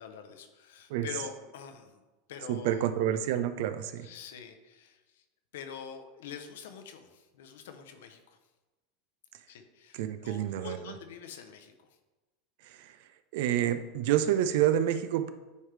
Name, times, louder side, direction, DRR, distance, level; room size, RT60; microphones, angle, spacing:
voice 1, 0.0-2.0 2.3-2.8 4.0-5.2 5.5-8.4 9.5-11.9, left 7 dB, 75° left, 7 dB, 0.7 m, -45 dB
voice 2, 2.5-4.1 9.9-10.9 12.6-13.0 13.3-15.3, right 11 dB, 65° right, 10 dB, 0.5 m, -28 dB
9.5 x 3.2 x 3.3 m, 1.1 s
hypercardioid pair, 100°, 0 cm